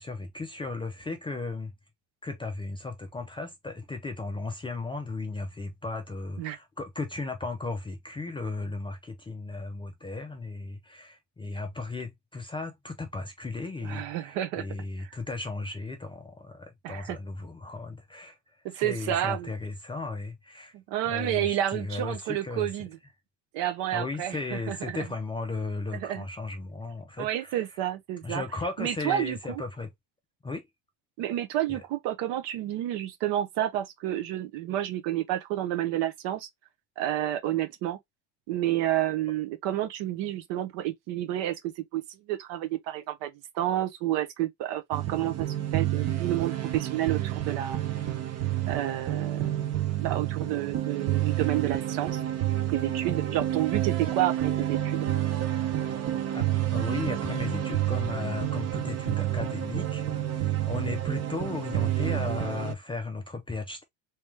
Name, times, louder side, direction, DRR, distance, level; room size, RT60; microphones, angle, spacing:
voice 1, 0.0-1.7 2.2-20.7 21.0-22.7 23.9-27.8 28.2-29.9 30.4-30.7 31.7-31.8 56.3-63.8, left 3 dB, 10° left, 0.4 m, -36 dB
voice 2, 13.8-14.7 15.0-15.1 16.8-17.2 18.6-19.5 20.7-22.9 23.5-25.0 25.9-26.2 27.2-28.4 28.8-29.6 31.2-36.5 37.0-38.0 38.5-42.0 42.3-47.8 48.7-49.6 50.0-52.2 52.7-55.1, right 12 dB, 65° right, 1.0 m, -30 dB
sound 1, 44.9-62.8, right 12 dB, 35° right, 0.7 m, -29 dB
3.2 x 3.0 x 3.3 m
cardioid pair, 140°, 47 cm